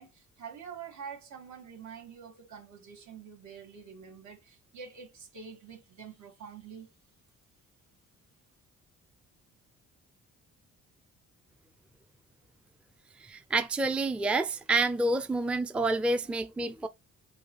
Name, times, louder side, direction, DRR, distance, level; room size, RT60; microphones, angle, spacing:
voice 1, 0.0-6.9, right 6 dB, 70° right, 2.2 m, -46 dB
voice 2, 13.2-16.9, right 2 dB, 5° right, 0.4 m, -28 dB
4.8 x 2.2 x 3.9 m
cardioid pair, 90°, 30 cm